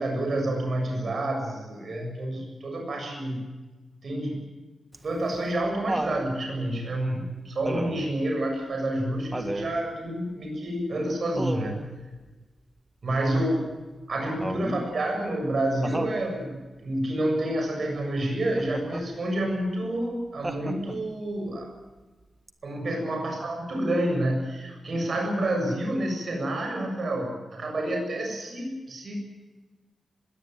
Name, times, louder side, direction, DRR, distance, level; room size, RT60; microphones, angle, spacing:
voice 1, 0.0-3.4 4.0-4.6 5.0-11.8 13.0-13.6 14.1-21.7 22.6-29.2, right 1 dB, 50° right, 2 dB, 7.2 m, -29 dB
Laughter, 4.9-6.3 7.6-8.1 9.3-9.8 11.3-11.9 14.4-14.9 15.8-16.2 18.6-19.1 20.4-21.1 22.5-22.6, right 1 dB, 15° right, 1.6 m, -32 dB
21.0 x 18.0 x 9.3 m, 1.2 s
wide cardioid pair, 160°, 0 cm